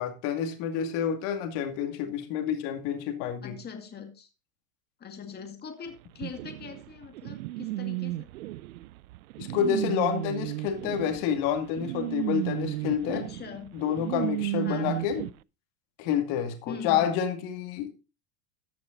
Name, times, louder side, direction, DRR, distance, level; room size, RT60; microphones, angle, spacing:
voice 1, 0.0-3.5 9.4-13.2 13.7-15.2 16.0-17.9, left 8 dB, 60° left, 2.5 m, -29 dB
voice 2, 3.4-4.3 5.0-8.3 13.1-13.7 14.6-15.4 16.7-17.2, left 6 dB, 25° left, 2.0 m, -42 dB
sound 1, 6.2-15.3, right 17 dB, 85° right, 0.5 m, -34 dB
14.0 x 6.0 x 3.9 m
supercardioid pair, 120°, 42 cm